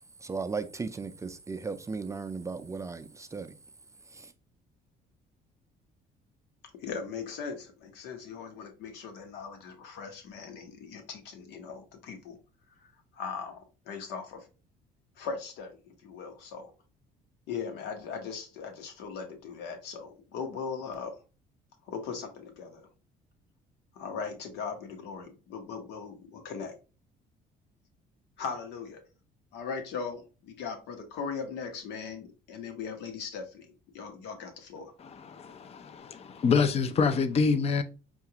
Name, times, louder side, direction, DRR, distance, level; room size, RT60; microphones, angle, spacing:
voice 1, 0.2-3.5 4.1-4.3, right 4 dB, 20° right, 0.3 m, -36 dB
voice 2, 6.8-12.4 13.1-14.5 15.2-16.7 17.5-21.1 21.8-22.9 23.9-26.7 28.4-29.0 29.5-34.9, left 5 dB, 90° left, 1.0 m, -39 dB
voice 3, 35.0-37.8, left 5 dB, 35° left, 0.5 m, -26 dB
5.7 x 2.4 x 2.8 m
cardioid pair, 110°, 17 cm